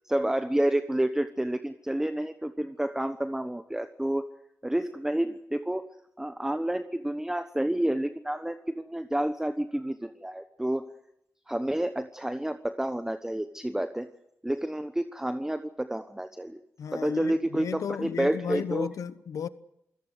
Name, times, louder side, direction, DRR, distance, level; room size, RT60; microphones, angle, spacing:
voice 1, 0.1-4.3 4.6-5.8 6.2-10.9 11.5-14.1 14.4-16.6 16.9-18.9, right 1 dB, 10° right, 1.1 m, -29 dB
voice 2, 16.8-19.5, left 8 dB, 90° left, 1.0 m, -34 dB
28.0 x 17.5 x 8.0 m
cardioid pair, 65°, 5 cm